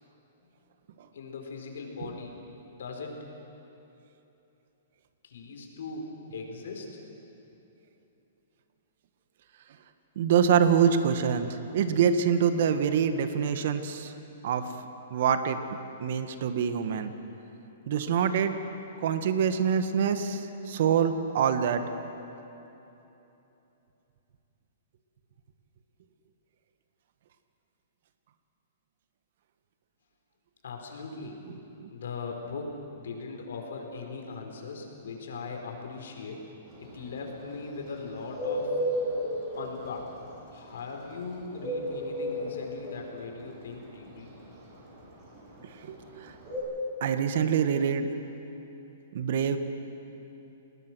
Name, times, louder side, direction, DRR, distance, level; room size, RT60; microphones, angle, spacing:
voice 1, 1.1-2.3 2.7-3.3 5.2-7.0 30.6-31.4 31.9-36.5 36.8-38.8 39.5-40.1 40.5-44.3, left 4 dB, 80° left, 2 dB, 4.7 m, -39 dB
voice 2, 10.1-14.1 14.4-14.7 15.1-15.6 16.0-17.1 17.9-18.6 19.0-20.4 20.7-21.8 31.8-31.9 45.8-46.3 47.0-48.1 49.1-49.6, right 7 dB, 55° right, 9 dB, 1.5 m, -25 dB
Bird, 36.7-46.6, equal, 30° right, 6.4 m, -33 dB
28.5 x 19.5 x 6.3 m, 3.0 s
hypercardioid pair, 155°, 0 cm